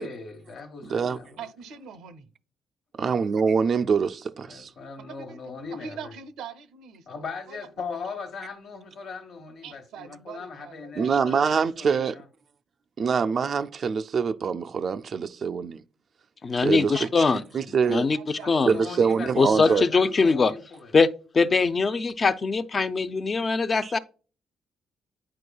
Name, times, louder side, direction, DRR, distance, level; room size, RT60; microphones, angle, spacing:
voice 1, 0.0-1.4 4.5-6.1 7.1-12.2 18.4-20.9, left 5 dB, 70° left, 1.2 m, -39 dB
voice 2, 1.4-2.3 5.0-5.4 5.7-7.0 7.5-7.7 9.6-11.1 16.8-17.1 17.9-18.6, right 7 dB, 85° right, 0.6 m, -42 dB
voice 3, 3.0-4.7 11.0-12.2 13.0-15.8 16.6-17.3 17.5-18.1 18.7-19.8 23.8-23.9, right 6 dB, 50° right, 0.3 m, -24 dB
voice 4, 16.4-17.4 17.9-18.2 18.5-18.8 19.4-20.5 20.9-21.1 21.3-24.0, left 4 dB, 35° left, 0.5 m, -22 dB
9.5 x 4.5 x 2.3 m
cardioid pair, 90°, 0 cm